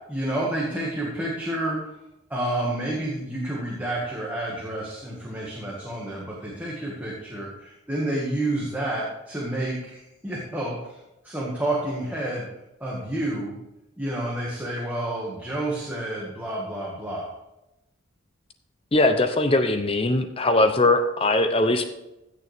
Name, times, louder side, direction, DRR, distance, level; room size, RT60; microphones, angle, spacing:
voice 1, 0.1-1.8 2.3-11.0 11.2-12.5 12.8-13.5 14.0-17.3, right 1 dB, 10° right, -5 dB, 1.8 m, -29 dB
voice 2, 18.9-21.8, left 2 dB, 25° left, 8 dB, 0.6 m, -20 dB
15.5 x 6.7 x 3.5 m, 0.92 s
head